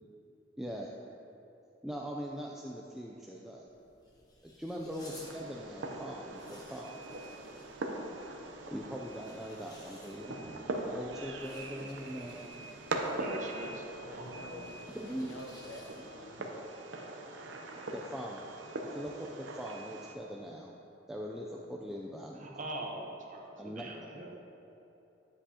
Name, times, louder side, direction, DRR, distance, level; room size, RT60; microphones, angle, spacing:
voice 1, 0.6-0.9 1.8-3.7 4.4-7.0 8.7-12.5 14.9-15.4 17.9-18.5 18.9-20.7 21.1-22.5 23.6-23.9, equal, ahead, -2 dB, 0.4 m, -41 dB
sound 1, 3.6-16.3, left 1 dB, 20° left, 1.0 m, -59 dB
Fireworks, 5.0-20.1, right 2 dB, 70° right, 0.7 m, -42 dB
voice 2, 13.2-13.8 14.1-14.8 22.3-24.4, right 1 dB, 40° right, 0 dB, 0.9 m, -42 dB
voice 3, 14.0-14.7 15.0-16.4, left 1 dB, 65° left, 2 dB, 0.8 m, -48 dB
10.0 x 7.6 x 2.8 m, 2.9 s
head